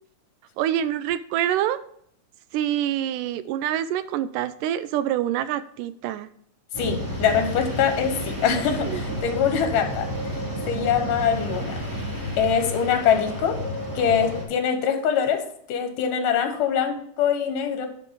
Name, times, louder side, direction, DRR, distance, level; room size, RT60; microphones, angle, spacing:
voice 1, 0.6-1.8 2.5-6.3 8.9-9.0, right 11 dB, 80° right, 13 dB, 2.1 m, -26 dB
sound 1, 6.7-14.4, equal, 5° right, 2.1 m, -31 dB
voice 2, 6.8-10.1 10.7-11.8 12.4-13.6 14.0-17.9, left 7 dB, 80° left, 6 dB, 2.8 m, -23 dB
10.5 x 5.9 x 3.8 m, 0.66 s
omnidirectional pair, 3.8 m